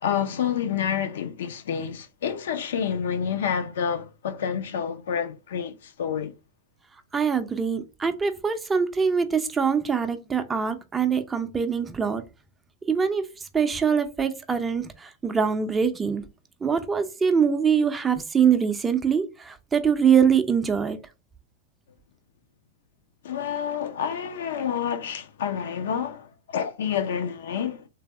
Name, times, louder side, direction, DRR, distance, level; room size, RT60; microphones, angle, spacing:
voice 1, 0.0-6.3 23.2-27.9, left 8 dB, 60° left, 0.5 m, -28 dB
voice 2, 7.1-12.2 12.9-13.3 13.5-16.2 16.6-21.0, right 6 dB, 15° right, 0.5 m, -23 dB
3.3 x 3.3 x 3.3 m
figure-of-eight pair, 90°, 0 cm